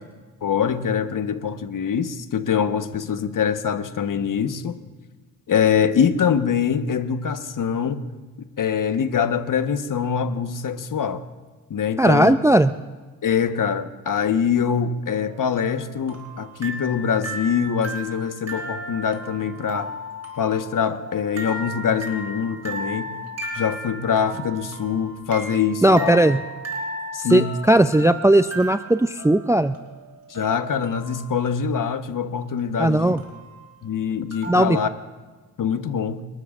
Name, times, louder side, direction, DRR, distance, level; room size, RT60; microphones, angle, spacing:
voice 1, 0.4-4.8 5.5-8.0 8.6-11.2 11.7-12.3 13.2-19.9 20.4-23.2 23.5-26.2 27.1-27.5 30.3-33.1 33.8-34.9 35.6-36.3, left 7 dB, 45° left, 1.4 m, -24 dB
voice 2, 12.0-12.7 25.8-26.4 27.3-29.7 32.8-33.2 34.5-34.8, right 1 dB, 5° right, 0.5 m, -17 dB
sound 1, 15.1-31.5 33.2-33.7 34.3-34.5, right 1 dB, 35° right, 5.0 m, -35 dB
30.0 x 13.0 x 2.6 m
hypercardioid pair, 50°, 43 cm